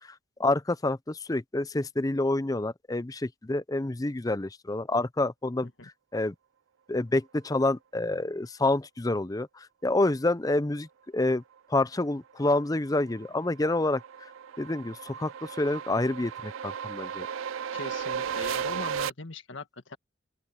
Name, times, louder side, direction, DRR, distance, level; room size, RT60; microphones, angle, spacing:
voice 1, 0.0-5.7 6.1-6.3 6.9-11.4 11.7-14.3 14.6-17.3, left 2 dB, 20° left, 0.5 m, -28 dB
sound 1, 12.5-19.1, right 7 dB, 85° right, 0.4 m, -35 dB
voice 2, 17.7-20.0, left 3 dB, 65° left, 1.8 m, -40 dB
open air
head